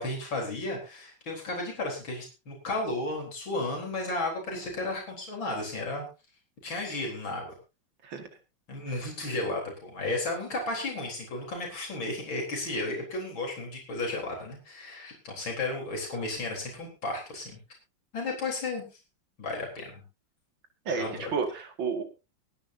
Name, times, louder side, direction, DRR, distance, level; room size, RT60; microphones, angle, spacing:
voice 1, 0.0-6.0 6.6-7.6 8.7-17.6 18.1-18.8 19.4-20.0 20.9-21.3, left 2 dB, 90° left, 0 dB, 4.8 m, -33 dB
voice 2, 20.9-22.0, right 5 dB, 80° right, 6 dB, 2.8 m, -31 dB
23.5 x 10.5 x 2.8 m, 0.28 s
omnidirectional pair, 2.1 m